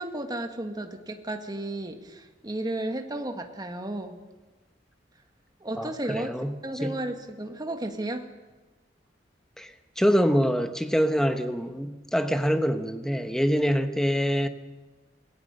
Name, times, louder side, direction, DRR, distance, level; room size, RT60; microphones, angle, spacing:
voice 1, 0.0-4.2 5.6-6.3 6.6-8.3, right 1 dB, 20° right, 5 dB, 1.7 m, -33 dB
voice 2, 5.8-7.0 9.6-9.7 10.0-14.5, equal, 5° left, 8 dB, 1.1 m, -25 dB
27.0 x 17.5 x 6.7 m, 1.2 s
head